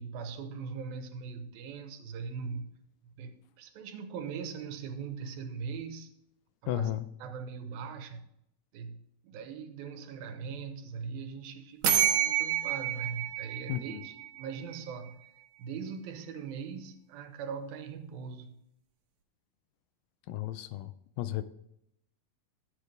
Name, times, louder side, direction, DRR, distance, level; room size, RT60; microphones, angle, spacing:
voice 1, 0.0-2.8 3.1-6.1 6.6-6.9 7.2-8.3 8.7-15.2 15.6-18.6, right 5 dB, 85° right, 2.8 m, -40 dB
voice 2, 6.7-7.1 13.7-14.0 20.3-21.4, left 14 dB, 80° left, 2.2 m, -34 dB
sound 1, 11.8-14.6, right 10 dB, 65° right, 2.0 m, -29 dB
13.0 x 8.4 x 3.5 m
omnidirectional pair, 4.1 m